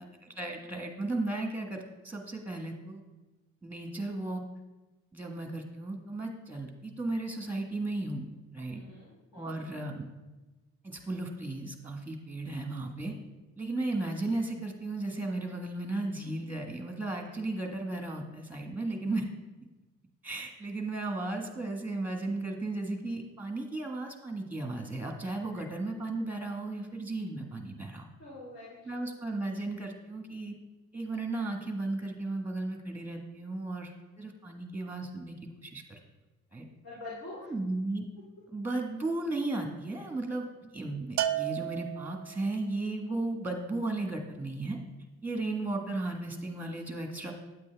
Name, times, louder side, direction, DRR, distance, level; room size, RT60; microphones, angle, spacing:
voice 1, 0.2-3.0 3.6-4.4 5.1-8.8 9.3-10.1 10.8-13.1 13.6-19.2 20.2-28.1 28.8-30.5 30.9-36.0 36.5-36.6 37.4-38.1 38.5-40.5 40.7-44.8 45.2-47.3, right 2 dB, 5° right, 3 dB, 1.5 m, -35 dB
voice 2, 8.7-9.7 25.5-25.6 28.2-29.0 36.8-37.5, left 2 dB, 50° left, -7 dB, 2.5 m, -46 dB
Bell, 41.2-42.5, right 12 dB, 65° right, 0.5 m, -32 dB
9.1 x 8.2 x 3.5 m, 1.1 s
cardioid pair, 90°, 30 cm